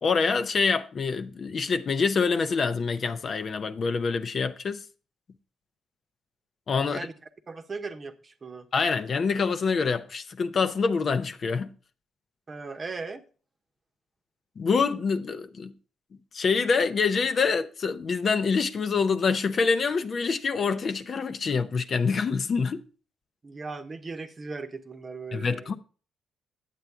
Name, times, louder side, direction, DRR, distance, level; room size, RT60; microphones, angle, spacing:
voice 1, 0.0-4.8 6.7-7.1 8.7-11.7 14.6-15.7 16.3-22.8 25.3-25.8, left 5 dB, 45° left, 0.6 m, -26 dB
voice 2, 6.8-7.1 7.5-8.7 12.5-13.2 23.4-25.8, right 4 dB, 35° right, 0.9 m, -38 dB
9.4 x 7.6 x 3.5 m
cardioid pair, 90°, 0 cm